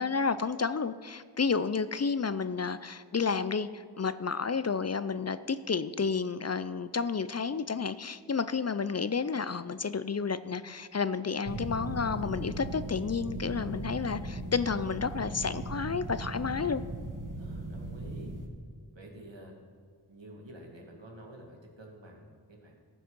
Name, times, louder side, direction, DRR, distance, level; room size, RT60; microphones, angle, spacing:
voice 1, 0.0-16.8, left 5 dB, 40° left, 14 dB, 0.4 m, -31 dB
sound 1, 11.4-18.5, right 2 dB, 45° right, 1.5 m, -38 dB
voice 2, 17.4-18.3 18.9-19.5 20.1-22.7, right 1 dB, 90° right, 0 dB, 1.8 m, -48 dB
14.5 x 6.1 x 5.4 m, 2.1 s
wide cardioid pair, 45°, 43 cm